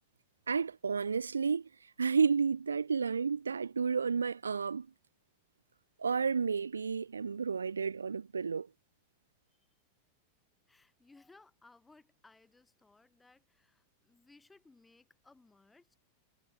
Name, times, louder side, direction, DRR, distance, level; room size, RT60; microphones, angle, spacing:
voice 1, 0.5-4.9 6.0-8.7, right 5 dB, 75° right, 0.4 m, -31 dB
voice 2, 10.7-16.0, left 3 dB, 10° left, 4.1 m, -62 dB
figure-of-eight pair, 90°, 0 cm